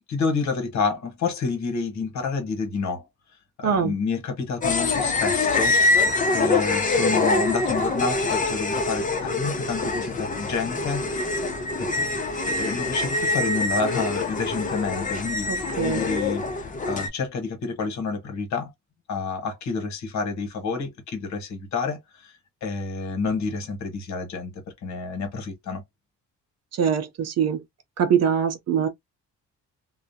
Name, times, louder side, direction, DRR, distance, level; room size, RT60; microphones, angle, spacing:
voice 1, 0.1-3.0 3.6-5.8 6.3-11.3 11.8-11.9 12.4-15.5 15.8-16.4 16.9-18.7 19.1-22.3 22.6-24.5 24.8-25.8, left 4 dB, 65° left, 1.1 m, -29 dB
voice 2, 3.6-4.0 15.5-16.1 26.7-27.6 28.0-28.9, right 7 dB, 55° right, 0.6 m, -23 dB
sound 1, 4.6-17.1, left 3 dB, 25° left, 0.6 m, -25 dB
2.3 x 2.1 x 2.7 m
cardioid pair, 90°, 30 cm